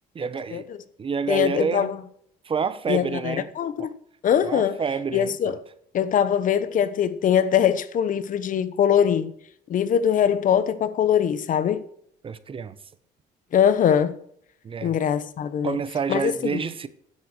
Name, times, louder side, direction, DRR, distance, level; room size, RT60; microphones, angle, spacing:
voice 1, 0.1-0.7 1.0-1.9 2.4-3.5 3.8-3.9 4.4-5.5 12.2-12.8 14.6-15.0 15.6-16.9, right 6 dB, 30° right, 0.8 m, -28 dB
voice 2, 1.3-1.9 2.9-3.9 4.2-4.8 5.1-5.5 5.9-9.3 9.7-11.8 13.5-14.2 14.8-15.8 16.1-16.6, left 9 dB, 50° left, 1.0 m, -22 dB
10.0 x 7.5 x 6.2 m
cardioid pair, 110°, 17 cm